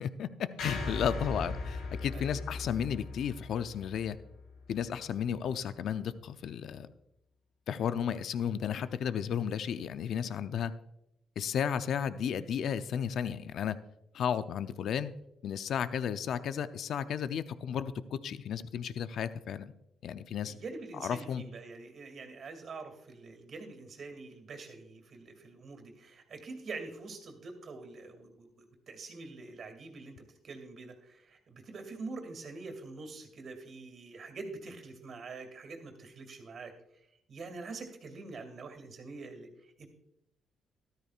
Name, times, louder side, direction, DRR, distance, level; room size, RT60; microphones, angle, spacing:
voice 1, 0.0-4.2 4.7-6.9 7.7-10.7 11.4-13.8 14.1-15.1 15.4-19.7 20.0-20.5 21.0-21.4, left 8 dB, 70° left, 12 dB, 0.6 m, -33 dB
sound 1, 0.6-4.9, left 3 dB, 85° left, 3.6 m, -39 dB
voice 2, 20.4-30.2 30.4-36.7 37.3-39.9, right 3 dB, 55° right, 6 dB, 2.5 m, -45 dB
13.5 x 13.0 x 2.4 m, 0.82 s
cardioid pair, 90°, 0 cm